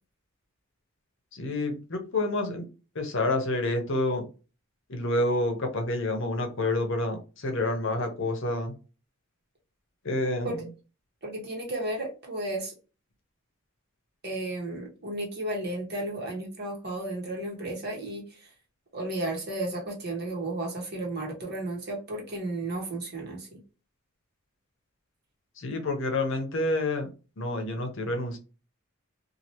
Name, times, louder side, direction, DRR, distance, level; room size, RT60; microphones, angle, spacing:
voice 1, 1.3-2.7 2.9-4.2 4.9-8.7 10.0-10.7 25.6-27.1 27.4-28.4, left 2 dB, 60° left, 4 dB, 0.8 m, -28 dB
voice 2, 11.2-12.7 14.2-18.2 18.9-23.6, right 1 dB, 50° right, -1 dB, 1.2 m, -33 dB
2.9 x 2.5 x 2.9 m, 0.32 s
head